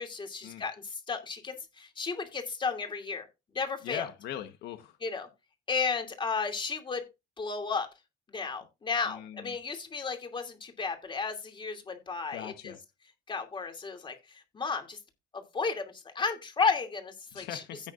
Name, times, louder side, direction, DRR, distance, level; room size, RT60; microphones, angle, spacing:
voice 1, 0.0-3.3 3.5-4.1 5.0-5.3 5.7-7.0 7.4-7.9 8.3-12.7 13.3-15.0 15.3-17.6, left 5 dB, 30° left, 2.7 m, -33 dB
voice 2, 3.8-5.0 9.0-9.6 12.3-12.8 17.3-17.9, left 11 dB, 80° left, 1.2 m, -40 dB
16.0 x 6.6 x 2.5 m
cardioid pair, 110°, 17 cm